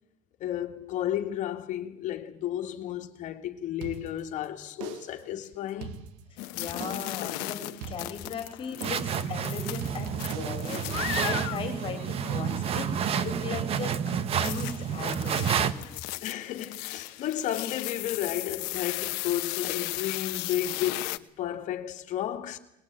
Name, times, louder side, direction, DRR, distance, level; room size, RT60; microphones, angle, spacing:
voice 1, 0.4-6.1 16.2-22.6, left 11 dB, 50° left, 2.3 m, -33 dB
sound 1, 3.8-4.4 4.8-5.3 5.7-6.4 6.8-7.3 7.8-8.4 8.8-9.3 9.8-11.8, right 9 dB, 90° right, 1.3 m, -41 dB
sound 2, 6.4-13.3 14.4-21.2, left 20 dB, 80° left, 1.1 m, -36 dB
voice 2, 6.5-7.6 7.9-15.9, left 6 dB, 35° left, 4.1 m, -38 dB
sound 3, 8.8-15.7, right 8 dB, 40° right, 1.2 m, -30 dB
21.5 x 20.5 x 9.1 m
cardioid pair, 140°, 16 cm